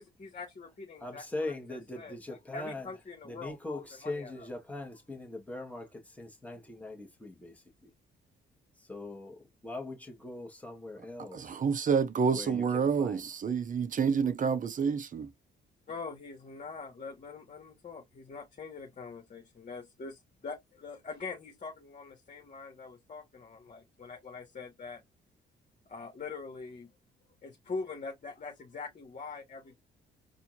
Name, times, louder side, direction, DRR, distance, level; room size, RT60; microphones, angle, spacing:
voice 1, 0.0-4.3 15.9-25.0 25.9-26.9 27.4-29.7, left 4 dB, 40° left, 1.9 m, -43 dB
voice 2, 1.0-2.9 3.2-7.9 8.8-11.6 12.3-12.6 13.0-13.2, left 2 dB, 5° left, 1.9 m, -41 dB
voice 3, 11.3-15.3, right 6 dB, 40° right, 0.7 m, -28 dB
4.3 x 2.7 x 2.8 m
cardioid pair, 90°, 20 cm